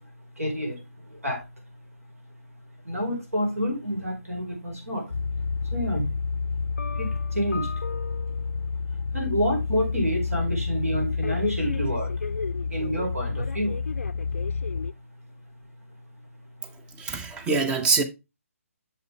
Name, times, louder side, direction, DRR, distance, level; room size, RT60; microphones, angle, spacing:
voice 1, 0.4-0.8 1.1-1.4 2.8-5.1 5.7-6.0 7.0-7.7 9.1-12.1 12.7-13.7, equal, 75° right, 4.6 m, -28 dB
sound 1, 5.1-14.9, left 4 dB, 65° left, 0.4 m, -29 dB
voice 2, 17.0-18.0, right 4 dB, 10° right, 0.7 m, -24 dB
7.8 x 6.8 x 3.4 m
figure-of-eight pair, 140°, 8 cm